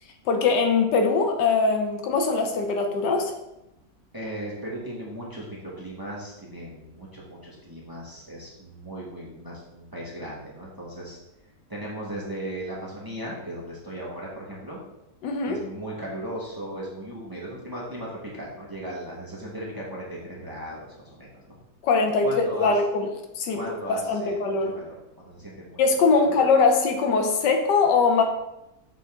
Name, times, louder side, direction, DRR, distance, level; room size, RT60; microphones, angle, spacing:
voice 1, 0.3-3.3 15.2-15.6 21.8-23.1 23.4-23.6 23.9-24.7 25.8-28.2, left 4 dB, 80° left, 4 dB, 1.4 m, -22 dB
voice 2, 4.1-11.2 11.7-14.8 15.4-21.6 22.2-22.8 23.5-25.8 26.2-26.3, right 1 dB, 15° right, -5 dB, 1.1 m, -37 dB
7.6 x 3.6 x 3.5 m, 0.90 s
omnidirectional pair, 1.8 m